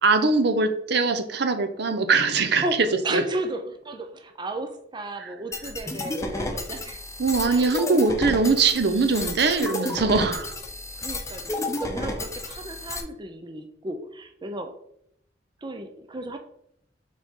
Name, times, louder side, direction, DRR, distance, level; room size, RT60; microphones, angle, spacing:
voice 1, 0.0-3.2 5.2-5.3 7.2-10.5, right 4 dB, 65° right, 9 dB, 0.7 m, -22 dB
voice 2, 2.6-7.0 7.4-8.0 11.0-14.7 15.6-16.4, right 1 dB, 25° right, 6 dB, 0.5 m, -34 dB
sound 1, 5.5-13.0, left 2 dB, 15° left, 0.8 m, -32 dB
6.3 x 4.1 x 3.7 m, 0.75 s
head